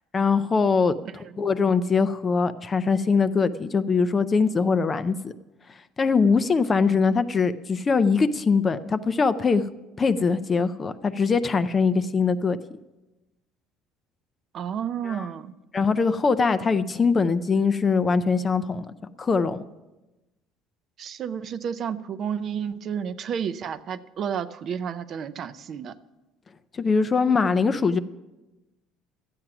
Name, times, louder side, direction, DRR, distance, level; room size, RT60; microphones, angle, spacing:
voice 1, 0.1-5.3 6.0-9.7 10.0-12.6 15.0-15.3 15.7-18.9 19.2-19.6 26.7-28.0, left 5 dB, 20° left, 13 dB, 0.4 m, -22 dB
voice 2, 14.5-15.5 21.0-25.9, right 8 dB, 40° right, 14 dB, 0.5 m, -31 dB
13.0 x 8.8 x 5.9 m, 1.1 s
cardioid pair, 155°, 0 cm